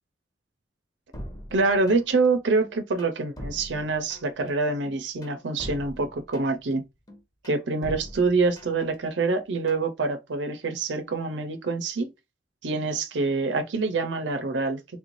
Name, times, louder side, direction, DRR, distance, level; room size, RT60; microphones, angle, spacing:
sound 1, 1.1-2.3 2.6-4.5 4.8-6.7 7.1-9.0 9.3-9.9, equal, 20° left, 0.8 m, -42 dB
voice 1, 1.5-6.8 7.4-12.1 12.6-14.8, right 3 dB, 85° right, 0.6 m, -26 dB
3.2 x 2.6 x 3.1 m
head